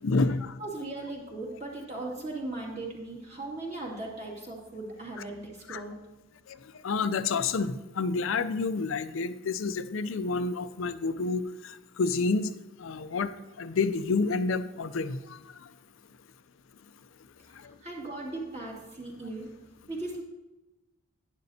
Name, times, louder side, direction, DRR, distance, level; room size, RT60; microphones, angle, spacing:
voice 1, 0.0-0.5 5.7-5.8 6.8-11.4 12.0-12.5 12.8-13.3 13.6-15.2, left 4 dB, 75° left, 12 dB, 0.5 m, -28 dB
voice 2, 0.6-6.0 17.8-19.5 19.9-20.2, right 2 dB, 35° right, -2 dB, 2.4 m, -38 dB
11.0 x 10.5 x 2.8 m, 1.0 s
head